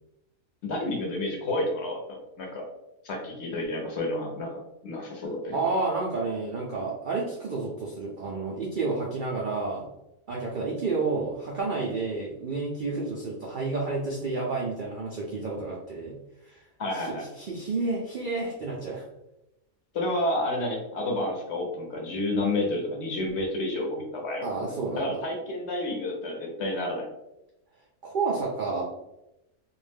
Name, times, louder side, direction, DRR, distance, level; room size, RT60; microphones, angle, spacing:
voice 1, 0.6-2.7 3.0-4.5 4.8-5.6 16.8-17.3 19.9-24.7 25.0-27.1, left 1 dB, 60° left, 0 dB, 0.9 m, -30 dB
voice 2, 5.5-9.9 10.3-16.2 16.4-16.6 16.9-19.0 24.4-25.0 28.0-28.8, right 3 dB, 85° right, -2 dB, 0.4 m, -30 dB
2.5 x 2.1 x 3.3 m, 0.91 s
omnidirectional pair, 1.4 m